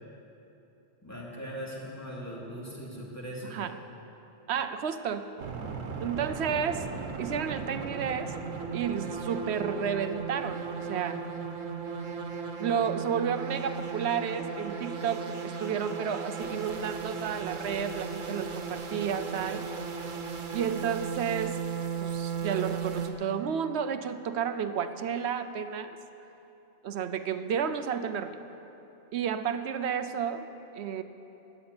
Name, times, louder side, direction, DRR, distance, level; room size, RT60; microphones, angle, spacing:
voice 1, 1.0-3.6, equal, 10° left, -5 dB, 2.7 m, -40 dB
voice 2, 4.5-5.3 6.0-8.3 8.7-11.2 12.6-19.7 20.5-21.6 22.0-26.0 26.8-28.4 29.1-30.5 30.7-31.0, right 7 dB, 65° right, 11 dB, 0.9 m, -31 dB
sound 1, 5.4-23.1, right 5 dB, 90° right, 1.4 m, -36 dB
12.5 x 8.8 x 9.5 m, 3.0 s
omnidirectional pair, 1.3 m